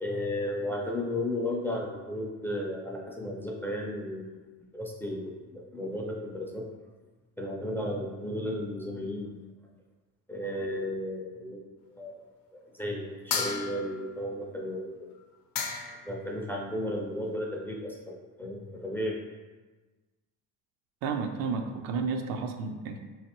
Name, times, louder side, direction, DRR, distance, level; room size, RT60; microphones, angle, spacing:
voice 1, 0.0-4.4 4.7-6.7 7.4-9.4 10.3-11.6 11.9-12.2 12.5-15.1 16.0-19.2, left 1 dB, 5° left, -1 dB, 0.4 m, -34 dB
sound 1, 13.3-14.1 15.2-15.3 15.5-16.1, left 6 dB, 75° left, 0.6 m, -33 dB
voice 2, 21.0-23.0, right 5 dB, 75° right, 5 dB, 0.5 m, -32 dB
3.7 x 3.2 x 2.8 m, 1.3 s
cardioid pair, 120°, 34 cm